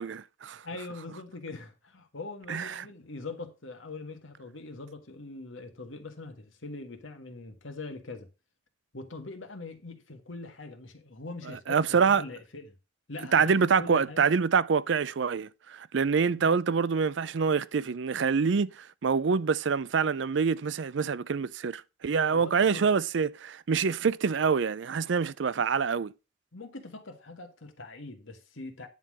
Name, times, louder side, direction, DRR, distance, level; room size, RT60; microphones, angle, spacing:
voice 1, 0.0-0.6 2.5-2.8 11.7-12.2 13.3-26.1, right 5 dB, 65° right, 0.5 m, -26 dB
voice 2, 0.6-8.3 8.9-12.7 13.1-14.3 16.3-16.6 22.3-22.9 26.5-28.9, left 3 dB, 85° left, 1.9 m, -42 dB
10.5 x 3.9 x 6.4 m
head